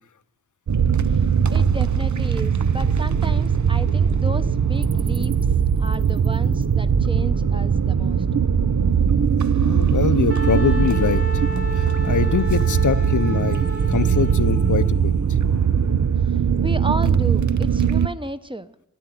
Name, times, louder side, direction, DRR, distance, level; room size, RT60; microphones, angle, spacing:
sound 1, 0.7-18.1, right 7 dB, 70° right, 0.7 m, -20 dB
voice 1, 1.5-5.3 5.8-8.2 16.6-18.7, right 1 dB, 15° right, 11 dB, 0.8 m, -32 dB
voice 2, 9.6-11.2 11.8-15.1 15.5-15.6, left 7 dB, 75° left, 13 dB, 0.7 m, -23 dB
Wind instrument woodwind instrument, 10.3-14.9, equal, 50° right, 2.5 m, -33 dB
13.5 x 10.0 x 9.3 m, 0.80 s
wide cardioid pair, 70°, 30 cm